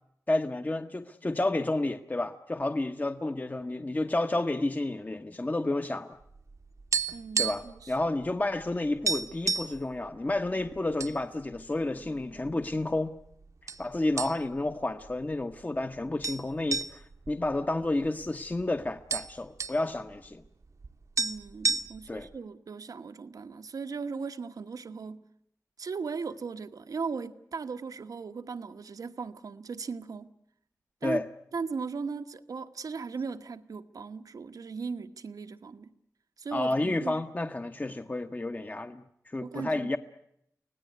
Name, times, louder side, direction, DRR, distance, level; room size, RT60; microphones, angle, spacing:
voice 1, 0.3-6.2 7.4-13.1 13.6-20.4 22.1-22.3 31.0-31.3 36.5-40.0, left 2 dB, 30° left, 1.0 m, -31 dB
sound 1, 6.4-7.8 8.1-8.3 8.6-8.7 9.1-9.8 10.5-11.2 11.5-11.7 12.4-13.0 13.7-13.8 14.2-14.7 15.1-15.2 16.2-18.3 18.6-18.7 18.9-19.8 20.8-20.9 21.2-22.2, right 4 dB, 60° right, 1.0 m, -31 dB
voice 2, 7.1-8.0 21.2-25.2 25.8-30.3 31.0-31.2 31.5-35.9 36.4-37.2 39.4-39.9, right 5 dB, 85° right, 1.2 m, -37 dB
25.0 x 17.5 x 9.4 m
wide cardioid pair, 70°, 6 cm